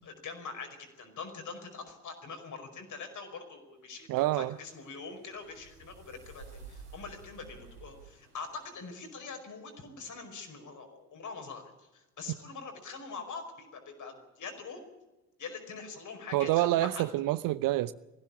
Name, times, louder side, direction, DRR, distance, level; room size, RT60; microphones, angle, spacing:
voice 1, 0.0-4.1 4.3-14.8 15.4-17.0, left 4 dB, 40° left, 5.3 m, -44 dB
sound 1, 3.9-9.2, right 4 dB, 90° right, 2.6 m, -53 dB
voice 2, 4.1-4.5 16.3-17.9, right 16 dB, 50° right, 0.8 m, -27 dB
20.5 x 16.0 x 8.6 m
figure-of-eight pair, 55°, 44 cm